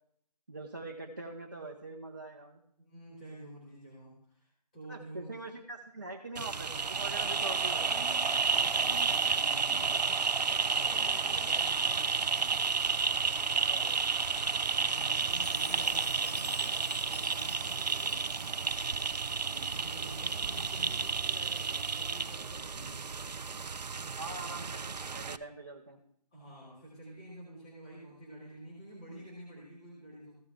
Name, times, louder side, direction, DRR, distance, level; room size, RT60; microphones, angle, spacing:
voice 1, 0.5-2.6 4.9-8.0 13.6-14.0 19.4-19.8 24.2-24.9 25.1-26.0, right 2 dB, 30° right, 0 dB, 0.9 m, -43 dB
voice 2, 2.8-5.3 7.2-7.4 7.9-8.3 8.6-10.2 10.5-12.6 14.7-18.5 19.7-23.1 26.3-30.3, right 1 dB, 10° left, -8 dB, 1.9 m, -49 dB
sound 1, 6.4-25.4, right 5 dB, 80° right, 0.6 m, -31 dB
Chime, 15.3-19.5, left 3 dB, 75° left, 1.8 m, -49 dB
15.0 x 5.4 x 3.6 m, 0.68 s
figure-of-eight pair, 175°, 21 cm